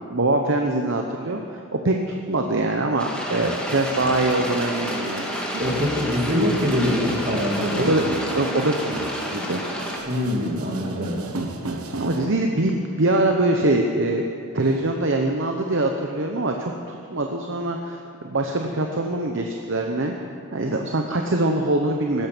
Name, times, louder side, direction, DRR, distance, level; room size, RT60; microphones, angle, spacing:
voice 1, 0.1-5.3 7.8-8.0 8.3-9.6 12.0-18.0 18.2-20.1 20.5-22.3, right 2 dB, 55° right, 2 dB, 0.9 m, -23 dB
sound 1, 3.0-10.0, equal, 5° left, 1.9 m, -30 dB
sound 2, 3.4-12.3, right 2 dB, 80° right, 1.4 m, -36 dB
voice 2, 5.6-7.9 10.1-11.2, left 1 dB, 40° right, -2 dB, 2.8 m, -24 dB
16.5 x 12.0 x 6.1 m, 2.4 s
head